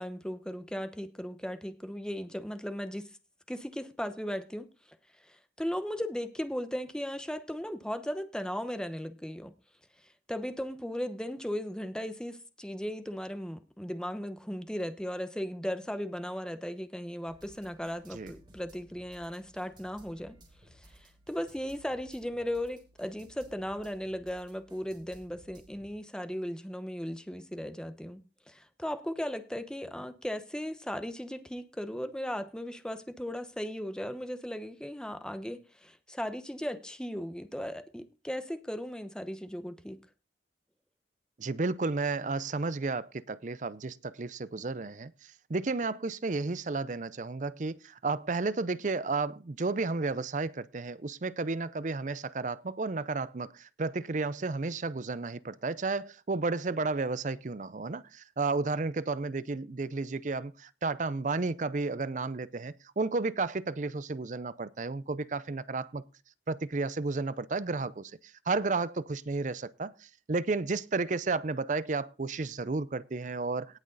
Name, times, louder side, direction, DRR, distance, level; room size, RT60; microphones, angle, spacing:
voice 1, 0.0-3.1 3.5-4.7 5.2-9.5 10.3-20.4 20.7-40.0, equal, 5° left, 0.9 m, -37 dB
sound 1, 17.3-25.9, right 1 dB, 25° right, 4.0 m, -58 dB
voice 2, 41.4-45.1 45.5-66.0 66.5-68.1 68.5-73.8, right 3 dB, 45° right, 0.5 m, -32 dB
18.0 x 6.2 x 4.0 m
head